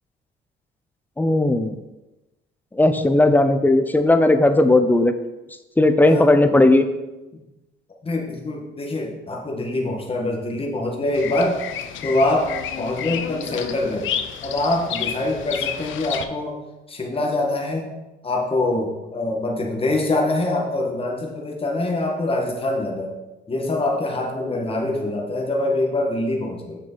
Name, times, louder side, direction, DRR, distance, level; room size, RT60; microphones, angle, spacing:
voice 1, 1.2-1.7 2.8-5.1 5.8-6.9, left 2 dB, 10° left, 8 dB, 0.7 m, -16 dB
voice 2, 6.0-6.6 8.0-11.6 12.0-14.1 14.4-16.6 16.9-17.9 18.2-23.2 23.5-26.8, left 2 dB, 30° left, 0 dB, 1.6 m, -24 dB
Bird vocalization bird call bird song, 11.1-16.2, left 9 dB, 80° left, 0.7 m, -30 dB
7.0 x 6.6 x 4.0 m, 1.0 s
cardioid pair, 90°, 20 cm